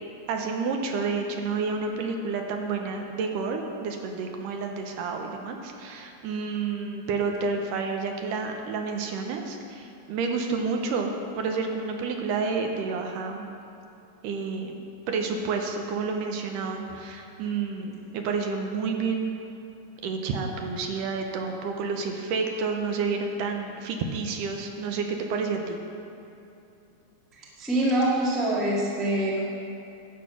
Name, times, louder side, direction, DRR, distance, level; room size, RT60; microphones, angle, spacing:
voice 1, 0.3-13.5 14.2-19.4 20.0-25.8, right 4 dB, 75° right, 3 dB, 2.3 m, -30 dB
voice 2, 27.6-29.4, right 1 dB, ahead, -6 dB, 0.4 m, -24 dB
11.5 x 7.5 x 5.8 m, 2.8 s
omnidirectional pair, 4.0 m